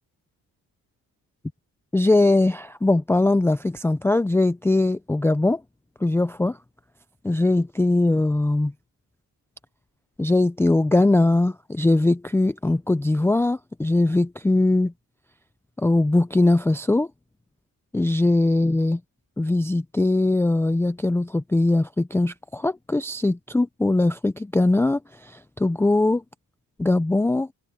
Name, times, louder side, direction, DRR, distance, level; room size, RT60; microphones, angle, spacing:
voice 1, 1.9-5.6 6.0-6.6 7.2-8.7 10.2-14.9 15.8-17.1 17.9-19.0 19.4-26.2 26.8-27.5, left 2 dB, 5° left, 0.4 m, -21 dB
wide cardioid pair, 135°, 36 cm